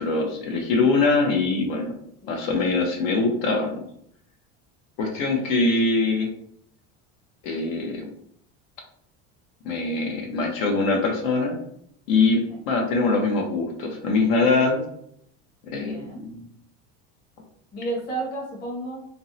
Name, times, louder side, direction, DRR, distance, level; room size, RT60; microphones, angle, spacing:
voice 1, 0.0-1.9 2.3-3.8 5.0-6.3 7.4-8.0 9.6-11.6 12.1-14.8 15.6-16.5, left 3 dB, 75° left, 2 dB, 0.7 m, -23 dB
voice 2, 15.8-16.3 17.7-19.1, right 2 dB, 30° left, -3 dB, 0.8 m, -32 dB
2.5 x 2.0 x 2.6 m, 0.69 s
cardioid pair, 140°, 33 cm